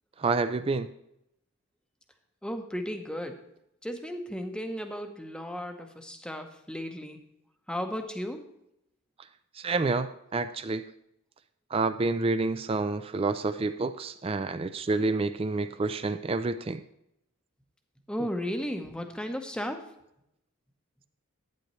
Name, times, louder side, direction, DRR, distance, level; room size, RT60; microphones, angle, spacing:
voice 1, 0.2-0.9 9.6-10.8 11.7-16.8, right 3 dB, 25° right, 11 dB, 0.3 m, -28 dB
voice 2, 2.4-3.5 3.8-7.2 7.7-8.5 18.1-19.9, equal, 5° left, 5 dB, 0.8 m, -35 dB
11.5 x 9.4 x 3.1 m, 0.80 s
head